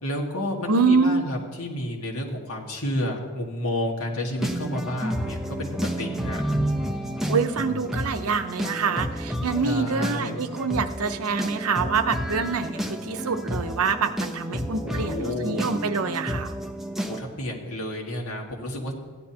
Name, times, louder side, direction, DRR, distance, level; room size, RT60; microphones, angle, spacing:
voice 1, 0.0-6.4 9.6-10.4 14.8-15.6 17.1-18.9, left 1 dB, 80° left, 0 dB, 1.8 m, -30 dB
voice 2, 0.7-1.2 7.3-16.5, right 5 dB, 80° right, 9 dB, 0.7 m, -25 dB
sound 1, 4.4-17.2, equal, ahead, 0.7 m, -30 dB
15.5 x 10.5 x 2.9 m, 1.5 s
head